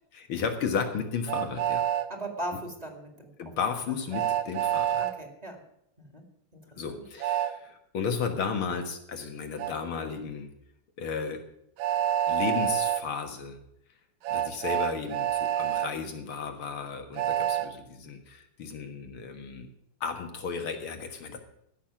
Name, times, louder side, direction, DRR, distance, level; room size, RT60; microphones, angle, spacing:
voice 1, 0.1-1.8 3.4-5.0 6.8-10.5 11.0-11.4 12.3-13.6 14.3-19.7 20.0-21.4, left 6 dB, 85° left, 5 dB, 2.4 m, -34 dB
Train, 1.3-2.1 4.1-5.1 7.2-7.5 9.6-9.7 11.8-13.0 14.2-15.9 17.1-17.7, right 11 dB, 85° right, 1.6 m, -27 dB
voice 2, 2.1-3.3 4.1-4.2 5.0-5.6 6.0-6.2 6.5-6.6 6.9-7.0, right 1 dB, 20° right, 3 dB, 2.1 m, -38 dB
14.5 x 6.3 x 8.8 m, 0.75 s
omnidirectional pair, 2.2 m